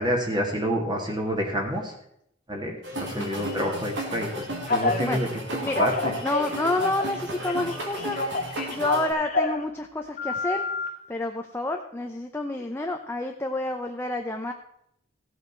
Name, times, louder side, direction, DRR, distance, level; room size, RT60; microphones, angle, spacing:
voice 1, 0.0-1.9 2.5-4.4 4.7-5.3 5.8-5.9, equal, 25° right, 0 dB, 2.3 m, -28 dB
sound 1, 2.8-9.1, right 1 dB, 70° right, 2.7 m, -34 dB
Telephone, 4.7-5.0 5.5-7.2 7.4-9.6 10.2-10.9, left 3 dB, 40° left, 1.7 m, -28 dB
voice 2, 6.2-8.2 8.7-10.6 11.1-14.5, left 2 dB, 15° left, 3 dB, 0.7 m, -29 dB
16.0 x 7.9 x 4.5 m, 0.74 s
head